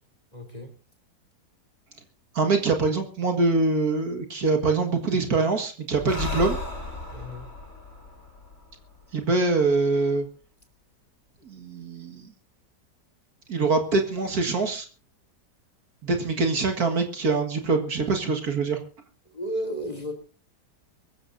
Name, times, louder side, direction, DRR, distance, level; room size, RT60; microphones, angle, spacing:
voice 1, 0.3-0.7 7.1-7.4 16.1-16.2 19.3-20.1, equal, 20° left, 5 dB, 3.1 m, -33 dB
voice 2, 2.3-6.6 9.1-10.3 11.4-12.3 13.5-14.9 16.0-18.8, right 3 dB, 60° right, 5 dB, 2.2 m, -24 dB
Breathing, 5.9-9.5, left 2 dB, 40° left, 4.4 m, -35 dB
24.0 x 15.0 x 2.6 m, 0.37 s
omnidirectional pair, 1.9 m